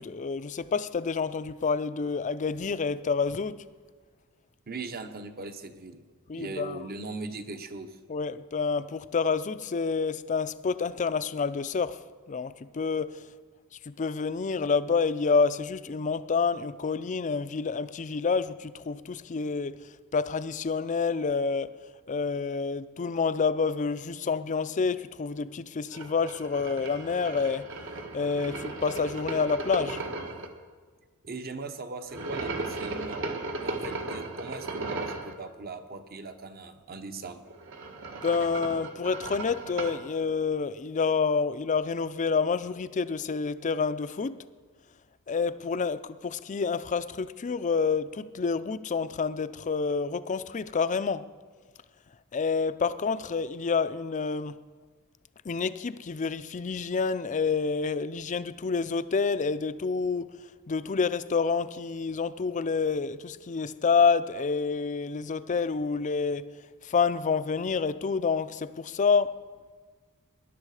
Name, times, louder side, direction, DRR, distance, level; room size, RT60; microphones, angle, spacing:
voice 1, 0.0-3.6 6.3-6.8 8.1-12.0 12.3-13.2 13.9-19.8 20.1-21.7 22.1-27.7 28.1-30.0 38.2-44.4 45.3-51.3 52.3-54.6 55.5-60.3 60.7-66.5 66.8-69.4, left 5 dB, 35° left, 0.4 m, -28 dB
voice 2, 4.7-6.0 6.3-8.0 31.2-37.4, right 3 dB, 45° right, 1.0 m, -39 dB
sound 1, 25.9-30.5 32.1-35.3 37.4-40.0, right 2 dB, 60° right, 1.3 m, -36 dB
20.0 x 11.0 x 4.9 m
head